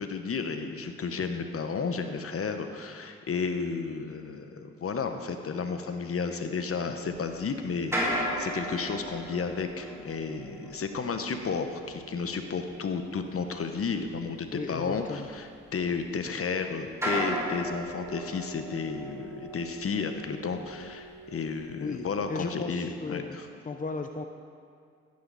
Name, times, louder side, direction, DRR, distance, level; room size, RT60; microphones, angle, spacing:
voice 1, 0.0-23.5, left 5 dB, 50° left, 7 dB, 1.1 m, -32 dB
sound 1, 7.1-16.5 16.9-22.5, equal, 10° right, 3.5 m, -37 dB
voice 2, 14.5-15.3 21.8-23.4 23.6-24.2, left 4 dB, 25° left, 5 dB, 0.8 m, -36 dB
14.5 x 9.6 x 4.2 m, 2.3 s
supercardioid pair, 60°, 30 cm